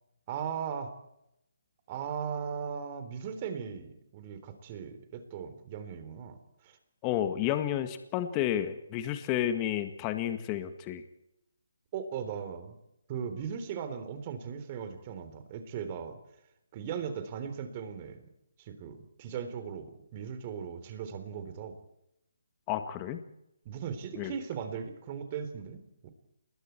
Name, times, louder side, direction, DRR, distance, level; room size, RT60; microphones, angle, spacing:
voice 1, 0.3-0.9 1.9-6.4 6.6-6.8 11.9-12.8 13.1-16.2 16.7-18.2 18.6-21.8 23.7-26.1, right 7 dB, 30° right, 9 dB, 3.7 m, -38 dB
voice 2, 7.0-11.0 22.7-23.2 24.2-24.3, left 11 dB, 20° left, 9 dB, 1.8 m, -31 dB
29.0 x 21.0 x 4.6 m, 0.83 s
figure-of-eight pair, 145°, 0 cm